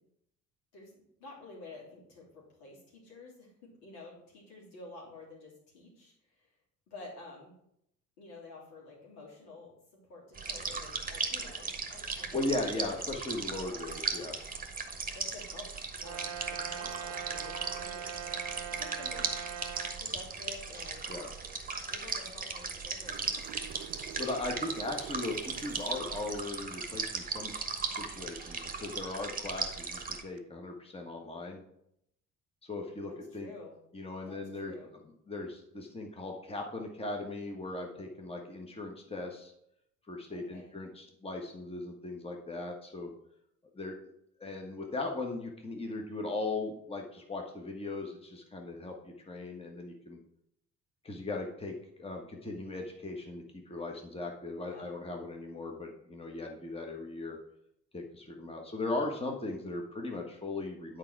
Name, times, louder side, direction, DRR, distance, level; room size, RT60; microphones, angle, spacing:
voice 1, 0.7-6.5 6.9-7.5 8.2-13.0 13.5-13.8 15.1-15.7 16.0-18.1 18.4-19.3 19.9-21.1 21.9-23.4 33.1-33.7 34.3-34.9 40.3-40.7 54.6-54.9, left 3 dB, 75° left, -4 dB, 3.2 m, -50 dB
sound 1, 10.3-30.2, right 4 dB, 20° right, 1.3 m, -37 dB
voice 2, 12.3-14.3 21.1-21.3 24.2-31.6 32.6-33.5 33.9-34.7 35.3-39.5 40.1-43.1 43.7-44.0 44.4-50.2 51.0-57.4 57.9-61.0, left 2 dB, 15° left, 2 dB, 1.4 m, -38 dB
Brass instrument, 16.0-20.0, right 9 dB, 35° right, 1.0 m, -41 dB
sound 2, 22.8-26.4 30.2-30.4, right 12 dB, 55° right, 0.6 m, -48 dB
9.3 x 4.7 x 4.7 m, 0.76 s
hypercardioid pair, 55°, 45 cm